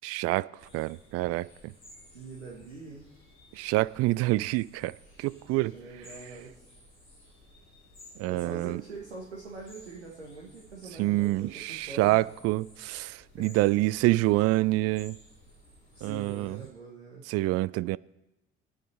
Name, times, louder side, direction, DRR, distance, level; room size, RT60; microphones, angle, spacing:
voice 1, 0.0-0.5 0.7-1.5 3.5-4.9 5.2-5.7 8.2-8.8 11.0-15.2 16.0-16.6 17.3-18.0, right 18 dB, 50° right, 0.4 m, -27 dB
sound 1, 0.6-16.7, left 1 dB, 85° left, 2.6 m, -56 dB
voice 2, 2.1-3.1 5.4-6.7 8.2-12.2 13.4-13.6 15.9-17.2, right 4 dB, 85° right, 1.3 m, -44 dB
23.5 x 9.3 x 4.3 m
figure-of-eight pair, 50°, 33 cm